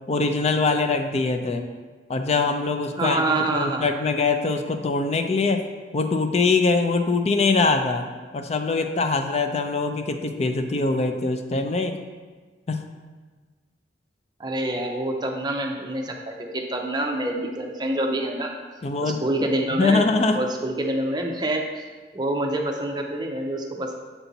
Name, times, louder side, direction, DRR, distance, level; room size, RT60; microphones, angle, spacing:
voice 1, 0.1-1.6 2.1-5.7 5.9-8.1 8.3-12.0 12.7-12.8 18.8-19.2 19.7-20.4, left 3 dB, 35° left, 6 dB, 0.4 m, -23 dB
voice 2, 3.0-3.9 14.4-18.5 19.0-20.0 20.3-21.9 22.1-23.9, right 1 dB, 25° right, 2 dB, 0.6 m, -26 dB
6.9 x 4.3 x 3.9 m, 1.4 s
head